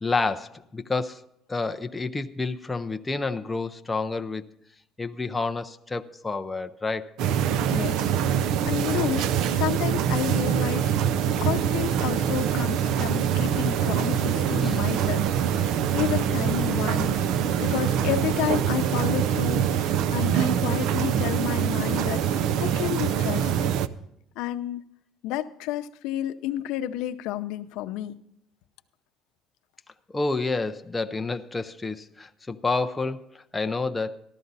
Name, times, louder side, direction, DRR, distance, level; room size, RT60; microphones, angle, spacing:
voice 1, 0.0-1.2 1.5-4.4 5.0-7.1 14.6-14.8 30.1-34.2, left 3 dB, 10° left, 6 dB, 0.5 m, -29 dB
sound 1, 7.2-23.9, right 9 dB, 65° right, 0.5 m, -24 dB
voice 2, 7.7-10.9 11.4-23.7 24.4-24.8 25.2-28.2, left 12 dB, 80° left, 9 dB, 0.7 m, -31 dB
sound 2, 12.1-18.9, right 5 dB, 30° right, 0.8 m, -42 dB
14.0 x 12.5 x 4.0 m, 0.77 s
cardioid pair, 165°, 0 cm